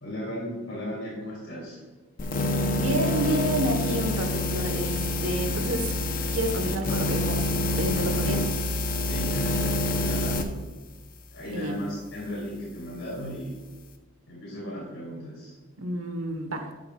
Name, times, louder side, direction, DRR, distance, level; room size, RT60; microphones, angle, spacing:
voice 1, 0.0-1.8 9.0-10.7 11.3-13.6 14.3-15.5, equal, 80° left, -6 dB, 3.0 m, -36 dB
sound 1, 2.2-10.5, left 1 dB, 40° left, 0.6 m, -27 dB
voice 2, 2.7-5.9 6.3-8.5 11.5-11.8 15.8-16.7, right 1 dB, 90° right, 6 dB, 1.2 m, -29 dB
11.5 x 8.7 x 2.3 m, 1.3 s
head